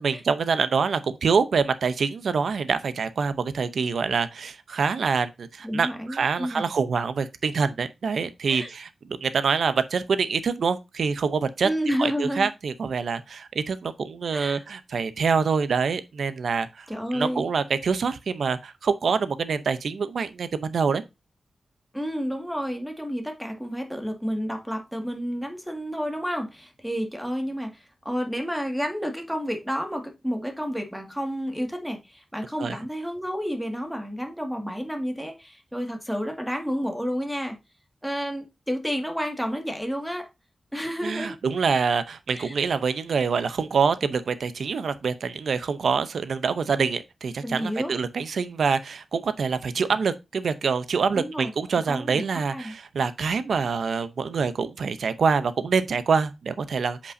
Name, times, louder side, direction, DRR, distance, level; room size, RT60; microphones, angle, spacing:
voice 1, 0.0-11.7 12.0-16.9 17.1-21.0 32.6-32.8 41.0-57.1, right 5 dB, 80° right, 0.7 m, -25 dB
voice 2, 5.6-6.7 8.5-8.7 11.6-12.5 14.3-14.6 16.9-17.5 21.9-37.6 38.0-40.3 40.7-41.3 42.3-42.6 47.4-47.9 51.1-51.5 51.9-52.2 52.5-52.7, equal, ahead, 2.0 m, -30 dB
8.3 x 5.2 x 2.7 m
wide cardioid pair, 85°, 0 cm